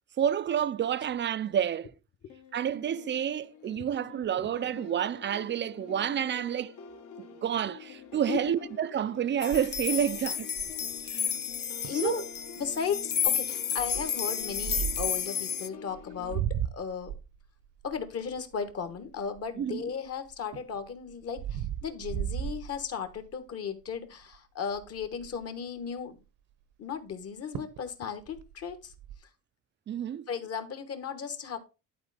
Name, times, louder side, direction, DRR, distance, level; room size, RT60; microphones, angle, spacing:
voice 1, 0.2-1.9 2.5-6.8 7.4-10.5 11.1-11.3 11.9-12.2 19.6-19.8 29.9-30.3, right 9 dB, 35° right, 0.4 m, -29 dB
sound 1, 2.3-16.4, left 6 dB, 65° left, 1.3 m, -48 dB
sound 2, 9.4-15.7, left 7 dB, 35° left, 0.5 m, -32 dB
sound 3, 9.5-11.0 11.5-11.6 11.8-12.1 12.6-12.9 13.8-15.2 15.9-19.8 20.3-23.3 23.8-24.1 24.3-24.4 24.7-25.4 27.1-27.2 27.5-27.9 28.2-29.2, right 10 dB, 75° right, 0.9 m, -36 dB
voice 2, 11.8-12.2 12.6-17.1 17.8-26.2 26.8-28.9 30.3-31.6, left 7 dB, 50° left, 1.3 m, -36 dB
11.0 x 4.3 x 4.1 m
cardioid pair, 125°, 32 cm